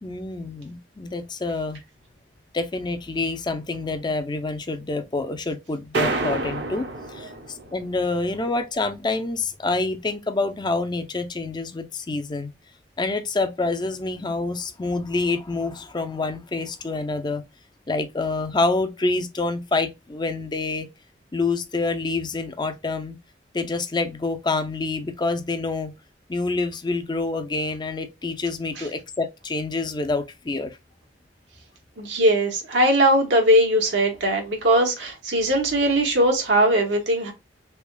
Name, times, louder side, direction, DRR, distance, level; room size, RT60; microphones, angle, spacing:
voice 1, 0.0-1.8 2.5-12.5 13.0-17.4 17.9-20.9 21.3-23.2 23.5-25.9 26.3-30.8, left 3 dB, 25° left, 0.5 m, -27 dB
sound 1, 5.9-7.9, right 2 dB, 65° right, 0.9 m, -28 dB
voice 2, 32.0-37.3, right 1 dB, 80° right, 1.1 m, -20 dB
3.5 x 3.3 x 2.2 m
head